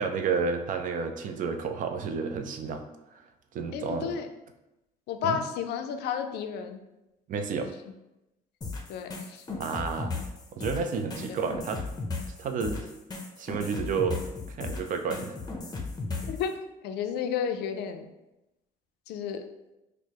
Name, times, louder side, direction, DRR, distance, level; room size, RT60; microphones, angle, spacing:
voice 1, 0.0-2.8 3.1-3.2 3.5-4.1 5.2-5.4 7.3-7.7 9.6-10.1 10.5-11.8 12.4-12.9 13.4-15.4, right 5 dB, 50° right, 6 dB, 0.4 m, -31 dB
voice 2, 3.7-4.3 5.1-6.8 8.9-9.6 11.3-11.4 16.3-16.5 16.8-18.1 19.1-19.4, left 7 dB, 75° left, 7 dB, 0.4 m, -32 dB
sound 1, 8.6-16.4, left 3 dB, 25° left, 0.6 m, -35 dB
4.5 x 2.1 x 2.9 m, 0.94 s
cardioid pair, 110°, 17 cm